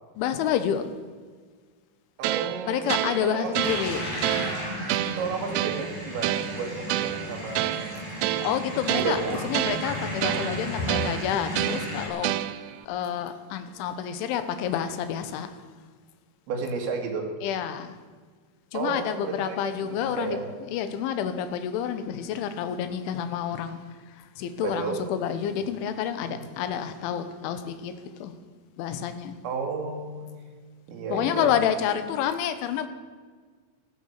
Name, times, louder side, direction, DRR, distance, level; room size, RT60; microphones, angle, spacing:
voice 1, 0.2-0.9 2.7-4.0 8.4-9.2 9.5-12.4 12.9-15.6 17.4-18.0 18.7-20.4 20.7-28.3 28.8-29.4 31.1-32.9, left 9 dB, 75° left, 10 dB, 3.2 m, -29 dB
voice 2, 2.2-3.5 4.8-7.7 8.2-8.5 8.9-9.4 16.5-17.3 18.7-19.8 20.2-20.4 24.6-25.0 26.2-26.5 29.4-30.3 30.9-31.5, right 4 dB, 65° right, 2 dB, 4.2 m, -32 dB
sound 1, 2.2-12.9, right 15 dB, 85° right, 3.2 m, -30 dB
sound 2, 3.6-12.1, left 1 dB, 35° left, 4.9 m, -34 dB
15.5 x 13.0 x 6.6 m, 1.5 s
omnidirectional pair, 5.8 m